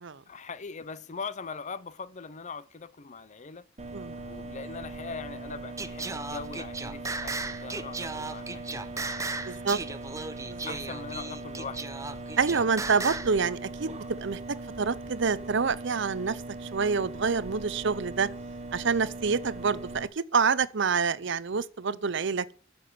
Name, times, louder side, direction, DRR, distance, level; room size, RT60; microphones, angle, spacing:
voice 1, 0.3-3.7 4.2-9.6 9.9-10.0 10.6-11.8, left 5 dB, 35° left, 0.6 m, -41 dB
sound 1, 3.8-20.1, right 2 dB, 35° right, 1.3 m, -40 dB
Singing, 5.8-13.4, right 3 dB, 15° right, 0.7 m, -36 dB
voice 2, 9.5-9.8 10.5-10.6 12.4-13.9 14.2-14.4 14.8-18.3 18.7-22.5, right 5 dB, 60° right, 0.7 m, -27 dB
11.0 x 7.0 x 7.7 m
head